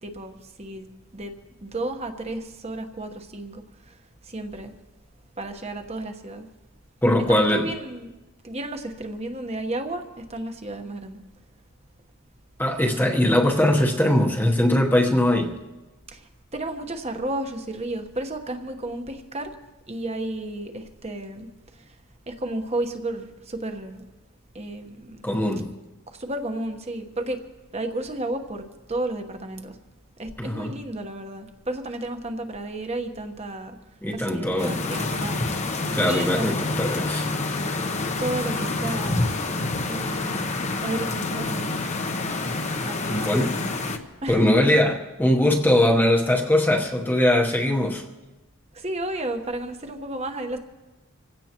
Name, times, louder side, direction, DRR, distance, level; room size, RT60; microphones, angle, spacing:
voice 1, 0.0-1.3 1.6-4.7 5.4-6.5 7.3-8.1 8.4-11.2 16.1-19.5 19.9-22.0 22.3-24.0 24.5-25.3 26.1-27.4 27.7-29.8 30.2-33.8 34.1-35.5 36.1-36.6 38.2-39.3 39.8-41.7 42.8-43.3 44.2-44.5 48.7-50.6, right 1 dB, 30° right, 6 dB, 1.2 m, -32 dB
voice 2, 7.0-7.7 12.6-15.6 25.2-25.7 30.4-30.7 34.0-34.8 35.8-37.2 43.1-43.6 44.3-48.0, left 1 dB, 10° left, 0 dB, 1.0 m, -21 dB
sound 1, 34.6-44.0, left 2 dB, 30° left, 0.9 m, -27 dB
26.5 x 16.5 x 3.0 m, 1.1 s
head